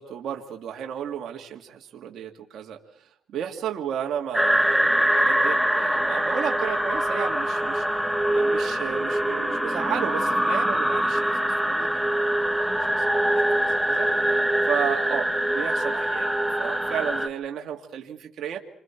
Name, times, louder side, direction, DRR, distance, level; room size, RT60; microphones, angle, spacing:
voice 1, 0.0-7.8 8.3-14.1 14.6-15.3 15.5-18.6, right 9 dB, 70° right, 1 dB, 2.2 m, -33 dB
sound 1, 4.3-17.3, right 1 dB, ahead, 1.4 m, -24 dB
29.0 x 25.5 x 4.6 m, 0.63 s
cardioid pair, 90°, 0 cm